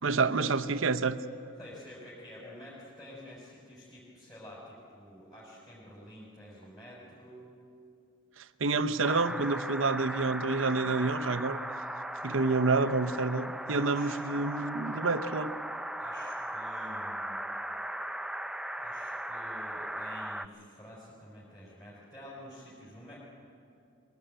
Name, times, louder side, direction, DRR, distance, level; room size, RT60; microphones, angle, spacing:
voice 1, 0.0-1.2 8.4-11.6 12.2-15.5, right 3 dB, 75° right, 10 dB, 0.8 m, -28 dB
voice 2, 1.6-7.5 13.8-14.2 16.0-17.3 18.8-23.2, equal, 20° left, -7 dB, 4.8 m, -49 dB
wind-noise-hawk, 9.0-20.5, right 1 dB, 5° right, 0.4 m, -38 dB
22.0 x 17.0 x 9.0 m, 2.6 s
head